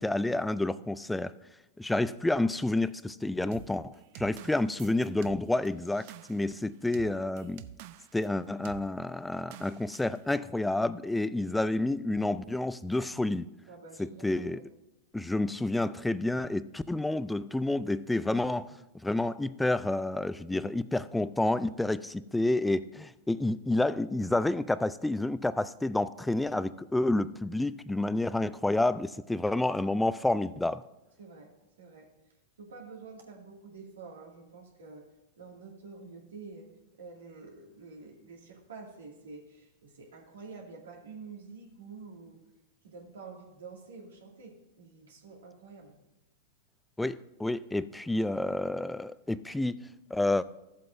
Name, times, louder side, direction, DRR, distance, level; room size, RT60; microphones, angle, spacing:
voice 1, 0.0-1.3 1.8-7.6 8.1-13.5 14.0-14.6 15.1-18.8 19.0-30.8 47.0-50.4, left 2 dB, 5° left, 0.4 m, -29 dB
sound 1, 3.5-8.3 8.7-8.9 9.5-10.2, right 12 dB, 55° right, 0.5 m, -48 dB
voice 2, 13.7-14.7 31.2-31.5 31.8-32.1 32.6-35.1 35.4-36.7 37.0-42.4 42.8-46.0, right 4 dB, 80° right, 2.3 m, -48 dB
14.0 x 7.7 x 2.6 m
hypercardioid pair, 110°, 0 cm